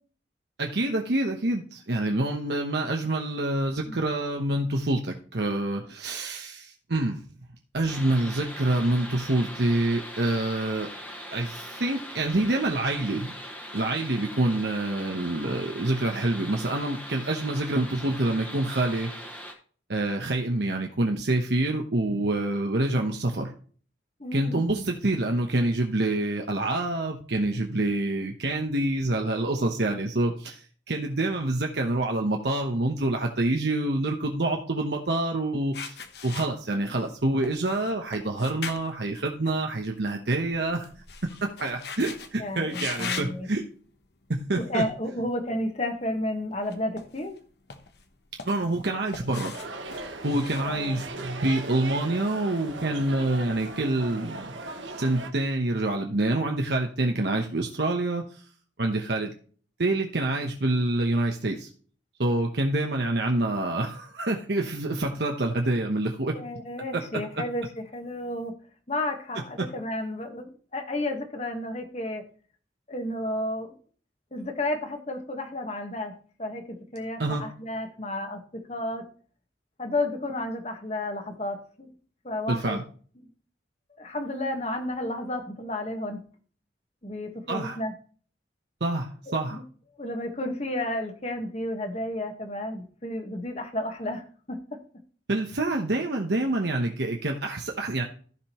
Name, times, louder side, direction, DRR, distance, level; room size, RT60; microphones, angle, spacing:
voice 1, 0.6-7.2 7.7-10.9 11.3-13.3 13.7-19.1 19.9-23.5 24.3-36.0 36.2-40.9 41.4-43.6 44.3-44.8 48.5-49.5 50.2-54.6 55.0-58.4 58.8-59.3 59.8-61.7 62.2-66.4 66.9-67.4 69.6-69.7 77.2-77.4 82.5-82.8 87.5-87.8 88.8-89.6 95.3-98.0, right 2 dB, 60° right, 2 dB, 1.0 m, -27 dB
sound 1, 7.9-19.5, equal, 10° left, 1.4 m, -41 dB
voice 2, 24.2-24.8 42.4-43.5 44.5-47.3 50.6-51.0 66.3-68.5 68.9-72.2 72.9-73.7 74.3-76.1 76.4-76.6 76.9-79.0 79.8-81.9 82.2-82.8 84.0-86.2 87.0-87.9 89.5-89.6 90.0-94.2 94.5-94.6, left 1 dB, 35° left, 5 dB, 1.4 m, -32 dB
sound 2, 35.7-37.1 37.4-40.0 40.3-42.3 42.7-43.4 44.0-44.3 46.6-47.4 47.7-48.8 49.1-51.3, left 6 dB, 55° left, 1.0 m, -39 dB
sound 3, 49.5-55.3, right 2 dB, 75° right, 1.3 m, -38 dB
15.0 x 5.1 x 3.0 m, 0.42 s
head